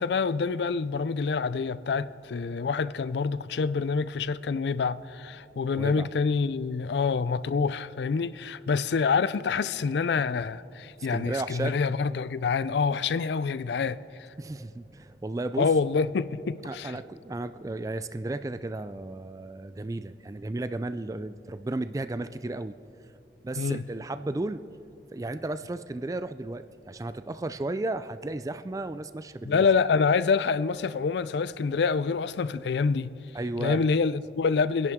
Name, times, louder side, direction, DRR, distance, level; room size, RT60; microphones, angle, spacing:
voice 1, 0.0-14.0 15.6-17.0 23.6-23.8 29.4-33.1 33.6-34.9, left 5 dB, 75° left, 0.4 m, -26 dB
voice 2, 5.8-6.1 11.1-11.7 14.4-15.7 16.6-22.8 23.4-24.6 25.1-29.7 33.3-33.8, right 2 dB, 20° right, 0.3 m, -34 dB
26.0 x 10.5 x 3.6 m
head